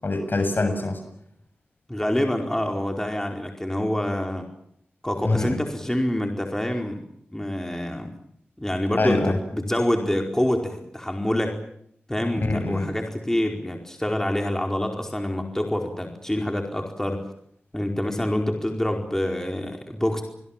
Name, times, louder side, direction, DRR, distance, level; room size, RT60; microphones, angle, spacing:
voice 1, 0.0-1.0 5.2-5.6 9.0-9.4 12.4-12.9, left 2 dB, 55° left, 8 dB, 7.4 m, -24 dB
voice 2, 1.9-4.5 5.0-7.0 7.3-8.1 8.6-11.6 12.1-17.2 17.7-20.2, left 1 dB, 10° left, 3 dB, 4.6 m, -26 dB
29.0 x 21.5 x 7.4 m, 0.70 s
cardioid pair, 45°, 4 cm